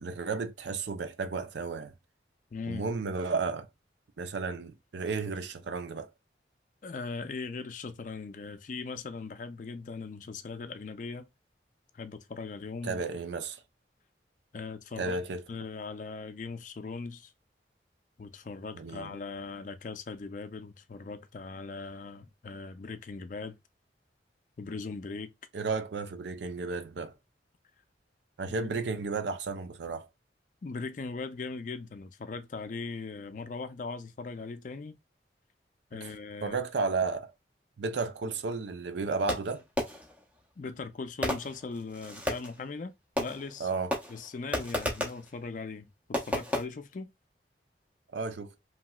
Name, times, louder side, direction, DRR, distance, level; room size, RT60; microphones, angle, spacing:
voice 1, 0.0-1.9 2.7-3.7 4.2-6.1 12.8-13.6 15.0-15.4 18.7-19.1 25.5-27.1 28.4-30.1 36.0-36.1 36.4-37.3 37.8-39.6 43.6-43.9 48.1-48.5, right 4 dB, 75° right, 0.5 m, -33 dB
voice 2, 2.5-2.9 6.8-11.3 11.9-13.0 14.5-15.2 15.5-17.3 18.2-23.6 24.6-25.3 30.6-35.0 35.9-36.6 40.6-43.7 44.1-47.1, left 4 dB, 45° left, 0.4 m, -39 dB
Fireworks, 39.3-40.2 41.2-42.6 43.2-43.6 43.9-45.3 46.1-46.6, left 1 dB, 10° right, 0.6 m, -33 dB
2.9 x 2.9 x 2.2 m
head